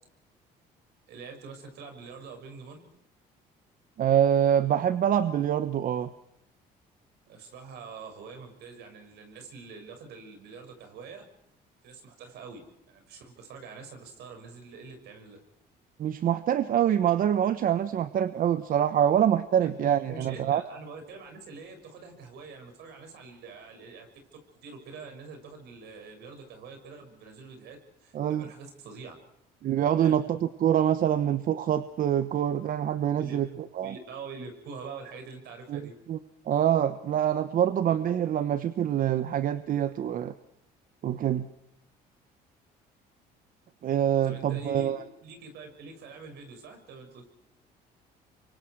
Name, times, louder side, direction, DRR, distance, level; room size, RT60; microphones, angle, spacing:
voice 1, 1.1-2.9 7.3-11.3 11.8-15.4 19.6-29.2 30.0-30.2 33.1-33.4 33.8-36.0 44.2-47.3, right 4 dB, 75° right, 6 dB, 6.4 m, -45 dB
voice 2, 4.0-6.1 16.0-20.6 28.1-28.5 29.6-33.5 33.8-33.9 35.7-35.8 36.1-36.2 36.5-40.3 41.0-41.5 43.8-45.0, right 10 dB, 55° right, 12 dB, 1.1 m, -25 dB
28.0 x 24.0 x 4.7 m, 0.81 s
cardioid pair, 110°, 17 cm